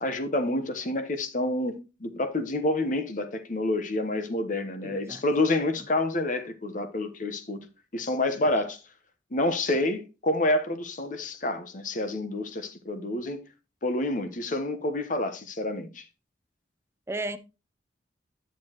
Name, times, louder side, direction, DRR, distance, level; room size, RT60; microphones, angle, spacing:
voice 1, 0.0-7.7 7.9-8.8 9.3-13.5 13.8-16.0, left 2 dB, 45° left, 1.0 m, -28 dB
voice 2, 4.8-5.2 5.8-5.9 17.1-17.4, right 2 dB, 15° right, 0.5 m, -34 dB
9.8 x 7.0 x 3.0 m
head